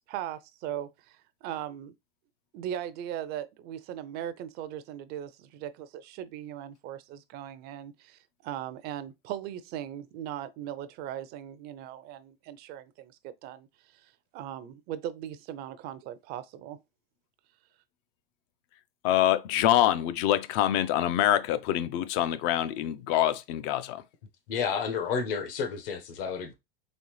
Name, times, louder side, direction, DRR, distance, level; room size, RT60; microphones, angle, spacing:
voice 1, 0.0-1.9 2.5-13.7 13.9-14.1 14.3-16.8, right 11 dB, 30° right, 0.5 m, -39 dB
voice 2, 19.0-24.0, left 12 dB, 35° left, 0.4 m, -25 dB
voice 3, 24.5-26.5, left 6 dB, 65° left, 1.2 m, -31 dB
4.1 x 3.2 x 3.1 m
hypercardioid pair, 125°, 31 cm